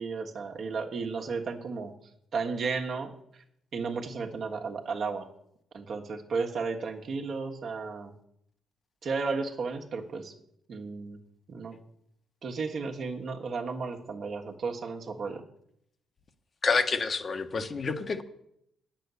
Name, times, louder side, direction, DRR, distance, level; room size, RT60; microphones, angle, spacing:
voice 1, 0.0-1.9 2.3-3.1 3.7-5.3 5.7-8.1 9.0-10.3 10.7-11.2 11.5-11.8 12.4-15.4, right 4 dB, 55° right, 2 dB, 1.5 m, -33 dB
voice 2, 16.6-18.2, left 4 dB, 40° left, 7 dB, 1.1 m, -28 dB
9.3 x 6.9 x 8.2 m, 0.73 s
cardioid pair, 90°, 0 cm